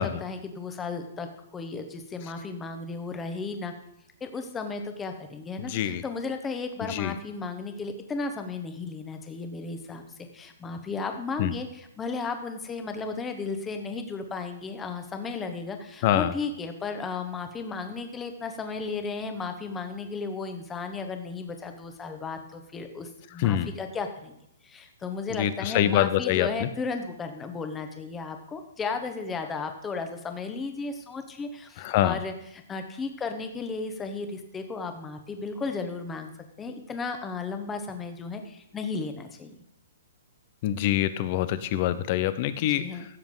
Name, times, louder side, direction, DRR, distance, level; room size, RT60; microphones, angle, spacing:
voice 1, 0.0-3.7 4.2-36.3 36.6-39.6 42.6-43.1, left 4 dB, 15° left, 6 dB, 1.2 m, -34 dB
voice 2, 5.7-6.0 6.9-7.1 11.4-11.5 16.0-16.3 23.4-23.7 25.4-26.7 31.8-32.2 40.6-42.9, left 12 dB, 40° left, 14 dB, 0.7 m, -25 dB
15.5 x 7.1 x 3.9 m, 0.78 s
hypercardioid pair, 145°, 0 cm